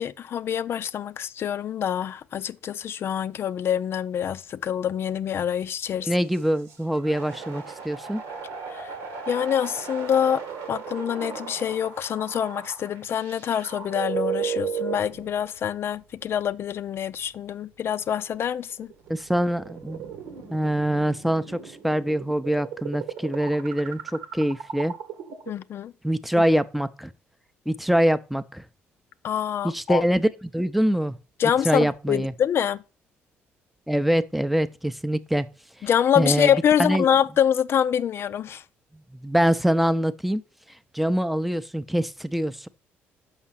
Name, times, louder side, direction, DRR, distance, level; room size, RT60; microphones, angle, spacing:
voice 1, 0.0-6.1 8.7-9.0 9.3-10.4 10.7-18.9 25.5-25.9 29.2-30.0 31.4-32.8 35.8-38.6, left 9 dB, 55° left, 0.4 m, -25 dB
voice 2, 6.1-8.2 19.1-20.0 20.5-24.9 26.0-27.1 27.7-28.6 29.6-30.3 30.5-31.2 31.6-32.3 33.9-35.5 36.2-36.5 36.8-37.1 39.2-40.4 40.9-42.7, equal, ahead, 0.6 m, -24 dB
sound 1, 6.2-15.5 16.2-16.3 17.9-25.5, right 7 dB, 85° right, 1.5 m, -35 dB
6.1 x 5.6 x 5.7 m
supercardioid pair, 80°, 5 cm